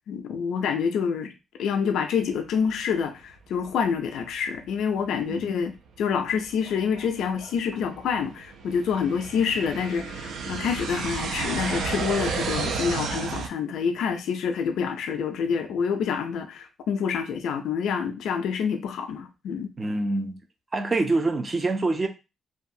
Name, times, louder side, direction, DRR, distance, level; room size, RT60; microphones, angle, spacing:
voice 1, 0.1-1.3 1.6-5.7 6.0-19.7, left 6 dB, 80° left, 0.4 m, -27 dB
sound 1, 4.7-4.8 5.4-5.5 6.1-13.5, right 5 dB, 90° right, 0.4 m, -32 dB
voice 2, 19.8-20.4 20.7-22.1, right 2 dB, 30° right, 0.6 m, -25 dB
2.6 x 2.2 x 2.6 m
cardioid pair, 95°, 0 cm